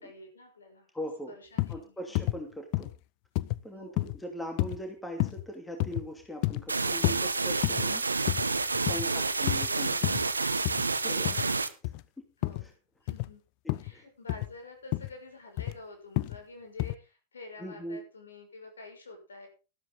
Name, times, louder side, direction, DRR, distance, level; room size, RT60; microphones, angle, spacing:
voice 1, 0.0-0.9 1.3-2.3 3.7-4.1 9.0-9.3 11.2-11.7 12.4-12.7 13.0-13.4 13.8-19.5, left 2 dB, 70° left, 4 dB, 6.1 m, -48 dB
voice 2, 0.9-1.3 1.7-2.9 3.6-8.0 8.8-10.2 11.0-11.5 12.2-12.3 13.6-14.0 17.6-18.0, equal, 5° left, 3 dB, 2.7 m, -40 dB
sound 1, 1.6-1.8 2.1-2.4 2.7-2.9 3.3-3.6 4.0-4.2 4.6-4.8 5.2-5.4 5.8-6.0 6.4-6.6 7.0-7.2 7.6-7.9 8.3-8.5 8.7-9.1 9.5-9.7 10.0-10.2 10.6-10.8 11.2-11.5 11.8-12.0 12.4-12.7 13.1-13.3 13.7-13.9 14.3-14.5 14.9-15.1 15.6-15.8 16.2-16.4 16.8-16.9, left 20 dB, 45° left, 0.7 m, -30 dB
sound 2, 6.7-11.7, right 3 dB, 80° right, 1.1 m, -29 dB
13.5 x 12.5 x 3.9 m, 0.32 s
figure-of-eight pair, 90°, 0 cm